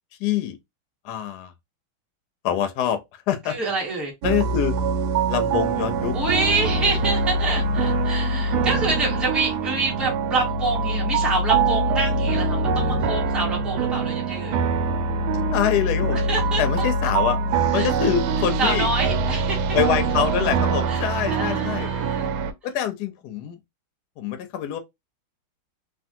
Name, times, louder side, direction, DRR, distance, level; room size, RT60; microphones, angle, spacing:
voice 1, 0.2-0.6 1.0-1.5 2.4-3.6 4.2-4.8 5.3-6.2 15.5-16.2 16.6-17.4 17.7-18.9 19.7-21.9 22.6-23.6 24.2-24.8, left 9 dB, 75° left, 1.0 m, -25 dB
voice 2, 3.5-4.1 6.1-14.6 16.1-16.6 17.7-17.9 18.6-19.8 20.9-21.0 21.3-22.3, right 3 dB, ahead, 0.7 m, -27 dB
sound 1, 4.2-22.5, right 3 dB, 80° right, 1.4 m, -23 dB
3.3 x 2.4 x 2.7 m
omnidirectional pair, 2.2 m